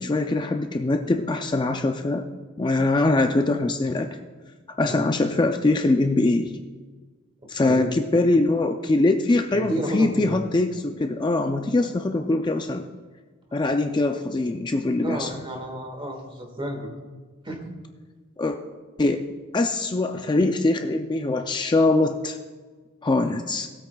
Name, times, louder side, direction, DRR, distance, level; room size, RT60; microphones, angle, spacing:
voice 1, 0.0-2.3 2.6-4.1 4.8-6.5 7.5-12.8 13.5-15.3 18.4-18.6 19.0-19.3 19.5-22.4 23.0-23.7, left 2 dB, 20° left, 6 dB, 0.4 m, -22 dB
voice 2, 9.5-10.4 15.0-16.9 17.4-17.6, right 1 dB, 25° right, 3 dB, 1.7 m, -31 dB
18.5 x 8.4 x 2.3 m, 1.4 s
head